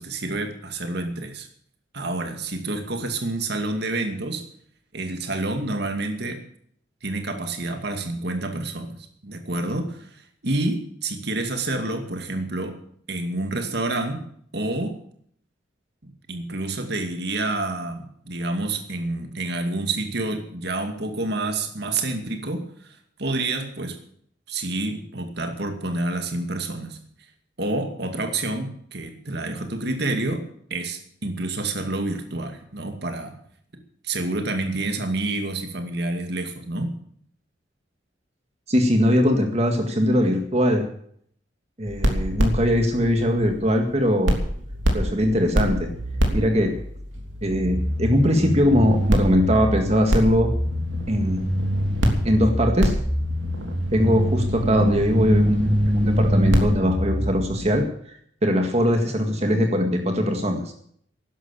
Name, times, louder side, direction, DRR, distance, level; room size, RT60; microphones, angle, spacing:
voice 1, 0.0-1.5 1.9-4.4 4.9-6.4 7.0-12.8 13.1-14.3 14.5-15.0 16.0-24.0 24.5-27.0 27.6-33.3 34.0-36.9, right 2 dB, 60° right, 5 dB, 2.4 m, -28 dB
voice 2, 38.7-40.9 41.8-44.4 44.9-45.9 46.3-46.7 47.4-50.5 51.1-51.4 52.2-53.0 53.9-57.9 58.4-60.7, equal, 35° right, 4 dB, 1.9 m, -21 dB
sound 1, 41.9-43.9 44.3-57.7, equal, 90° right, 3.2 m, -24 dB
12.5 x 11.0 x 8.6 m, 0.64 s
head